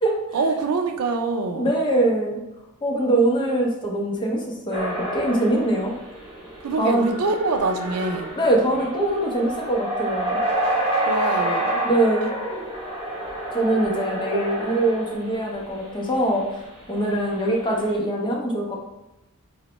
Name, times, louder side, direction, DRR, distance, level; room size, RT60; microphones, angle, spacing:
voice 1, 0.3-1.7 6.6-8.3 11.1-11.8, right 3 dB, 85° right, 5 dB, 0.4 m, -24 dB
voice 2, 1.5-2.4 2.8-5.9 6.8-7.1 8.4-10.4 11.8-12.3 13.5-16.4 16.9-18.8, right 1 dB, 20° left, -1 dB, 0.6 m, -22 dB
sound 1, 4.7-15.7 16.4-16.6 17.1-18.0, right 1 dB, 25° right, 1.4 m, -29 dB
4.1 x 2.0 x 2.9 m, 0.95 s
head